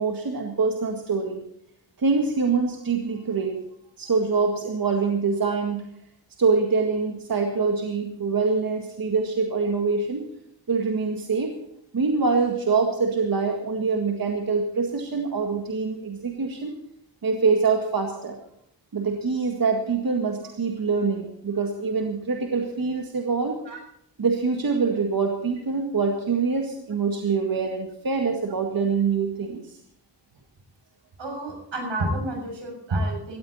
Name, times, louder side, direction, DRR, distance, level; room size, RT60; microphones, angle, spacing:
voice 1, 0.0-1.4 2.0-3.6 4.0-5.8 6.4-10.3 10.7-11.6 11.9-16.7 17.2-18.4 18.9-23.6 24.2-29.8, right 4 dB, 50° right, 2 dB, 1.8 m, -24 dB
voice 2, 31.2-33.4, right 1 dB, 75° right, 3 dB, 6.8 m, -29 dB
17.5 x 14.5 x 4.2 m, 0.73 s
cardioid pair, 85°, 44 cm